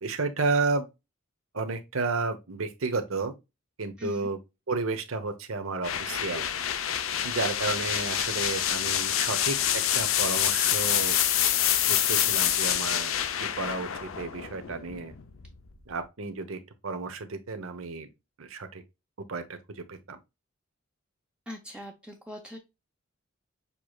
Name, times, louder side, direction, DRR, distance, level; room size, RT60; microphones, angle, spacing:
voice 1, 0.0-0.8 1.5-3.3 3.8-4.4 4.7-6.4 7.2-9.6 9.9-11.3 11.9-15.1 15.9-18.1 18.4-18.8 19.3-19.4 19.8-20.2, right 3 dB, 80° right, 1.0 m, -32 dB
voice 2, 4.0-4.3 7.6-7.7 21.5-22.6, left 1 dB, 5° right, 0.6 m, -42 dB
sound 1, 5.8-15.6, left 10 dB, 75° left, 0.6 m, -27 dB
6.9 x 3.2 x 2.3 m
head